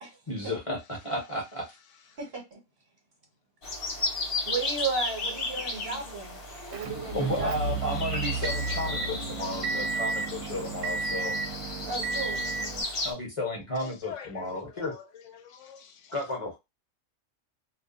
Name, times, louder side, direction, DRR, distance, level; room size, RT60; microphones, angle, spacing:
voice 1, 0.3-1.7 7.1-11.4 13.0-14.9 16.1-16.5, left 1 dB, 30° left, 0.8 m, -33 dB
voice 2, 2.2-2.6 4.5-6.4 6.7-7.8 11.9-12.4, right 4 dB, 55° right, 1.1 m, -34 dB
sound 1, 3.6-13.1, left 2 dB, 50° left, 1.0 m, -35 dB
voice 3, 5.6-6.2 6.5-6.8 7.9-8.1 9.3-10.1 10.5-10.7 11.0-11.1 11.7-11.8 13.8-16.1, left 8 dB, 80° left, 0.9 m, -48 dB
Motor vehicle (road) / Engine, 6.7-12.8, right 4 dB, 80° right, 0.9 m, -32 dB
2.4 x 2.2 x 2.4 m
omnidirectional pair, 1.3 m